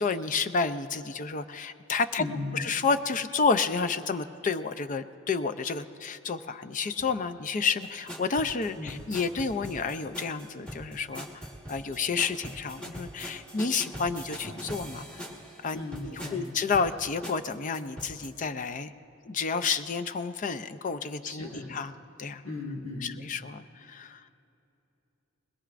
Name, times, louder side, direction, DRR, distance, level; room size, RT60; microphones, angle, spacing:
voice 1, 0.0-2.2 2.5-11.4 11.7-15.1 15.6-18.9 19.3-21.9 22.2-22.4 23.0-24.2, left 5 dB, 40° left, 11 dB, 0.5 m, -30 dB
voice 2, 2.2-2.6 8.8-9.0 15.7-16.5 21.2-21.7 22.4-23.2, left 2 dB, 80° left, -2 dB, 1.6 m, -37 dB
sound 1, 7.8-18.3, equal, 5° left, 1.4 m, -42 dB
21.0 x 20.5 x 2.5 m, 2.9 s
head